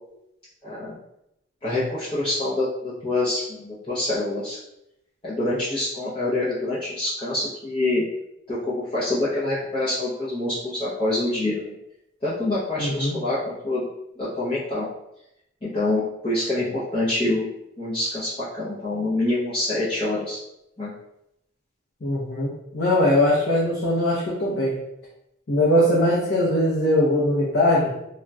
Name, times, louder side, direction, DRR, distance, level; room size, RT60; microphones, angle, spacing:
voice 1, 0.6-1.0 1.6-4.6 5.2-8.0 8.5-11.7 12.2-13.8 14.2-14.9 15.6-17.5 17.8-20.4 20.8-20.9, left 2 dB, 30° left, -11 dB, 0.6 m, -26 dB
voice 2, 12.8-13.2 22.0-24.8 25.5-27.9, left 1 dB, 65° left, -6 dB, 0.6 m, -21 dB
3.8 x 2.2 x 2.3 m, 0.83 s
head